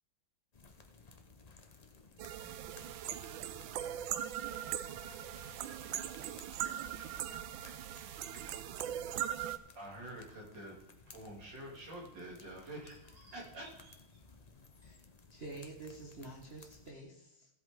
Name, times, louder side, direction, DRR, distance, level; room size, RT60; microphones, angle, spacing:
sound 1, 0.5-16.9, left 4 dB, 60° left, 0.4 m, -59 dB
sound 2, 2.2-9.6, right 11 dB, 75° right, 1.3 m, -40 dB
voice 1, 3.6-6.8, left 8 dB, 75° left, 1.3 m, -65 dB
voice 2, 9.7-10.8 11.1-14.2, right 1 dB, 55° right, 3.5 m, -48 dB
voice 3, 15.3-17.5, right 2 dB, 30° right, 1.5 m, -48 dB
16.0 x 8.1 x 3.8 m
omnidirectional pair, 2.3 m